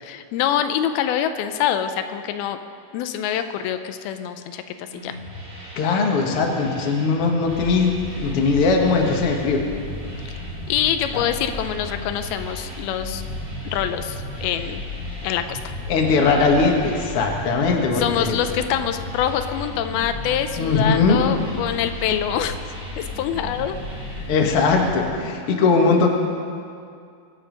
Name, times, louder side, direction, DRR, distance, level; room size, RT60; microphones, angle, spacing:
voice 1, 0.0-2.6 2.9-5.2 10.3-10.4 10.7-13.2 13.6-14.8 15.2-15.6 17.9-22.6 23.0-23.8 24.1-24.3, left 10 dB, 90° left, 9 dB, 2.6 m, -25 dB
sound 1, 4.9-24.9, equal, 35° right, 5.3 m, -38 dB
voice 2, 5.8-9.6 11.1-11.2 15.9-18.4 20.6-21.2 24.3-26.1, left 4 dB, 50° left, 1 dB, 1.9 m, -20 dB
sound 2, 7.4-25.1, left 2 dB, 90° right, 5.9 m, -36 dB
23.5 x 9.4 x 5.2 m, 2.4 s
omnidirectional pair, 4.3 m